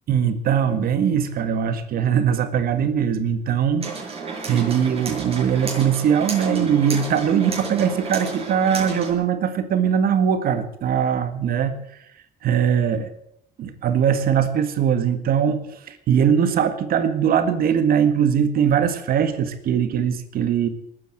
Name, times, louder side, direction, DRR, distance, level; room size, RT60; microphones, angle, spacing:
voice 1, 0.1-11.8 12.4-13.1 13.6-20.7, right 8 dB, 60° right, 9 dB, 1.8 m, -21 dB
sound 1, 3.8-9.1, right 4 dB, 35° right, 7.2 m, -32 dB
20.0 x 9.3 x 7.8 m, 0.75 s
cardioid pair, 110°, 17 cm